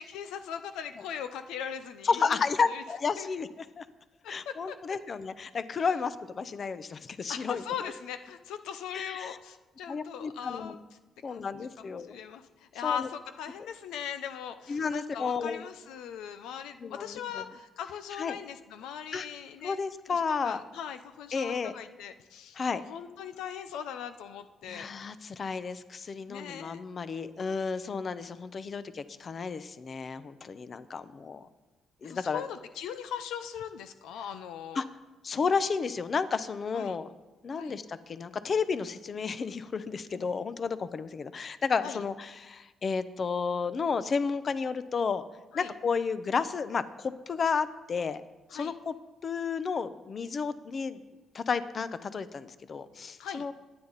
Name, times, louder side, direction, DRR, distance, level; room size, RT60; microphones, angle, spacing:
voice 1, 0.0-2.8 3.2-3.3 4.2-4.8 5.8-5.9 7.3-10.8 11.3-19.8 20.1-24.9 26.3-26.8 32.0-34.8 36.7-37.0 37.5-37.7 41.8-42.0 45.5-45.7 48.5-48.7 53.2-53.5, left 8 dB, 90° left, 10 dB, 0.7 m, -40 dB
voice 2, 2.0-3.5 3.8-3.9 4.3-7.6 8.9-9.4 9.9-10.8 11.2-12.2 12.8-13.1 14.7-15.6 16.8-17.4 18.2-18.4 19.1-19.3 19.6-20.6 21.3-21.7 22.6-22.8 24.6-31.5 32.0-32.4 34.7-34.8 35.2-37.1 37.4-45.2 45.5-48.2 48.5-48.9 49.2-51.0 51.3-53.5, left 5 dB, 45° left, 13 dB, 0.8 m, -32 dB
25.0 x 9.8 x 4.1 m, 1.2 s
cardioid pair, 90°, 0 cm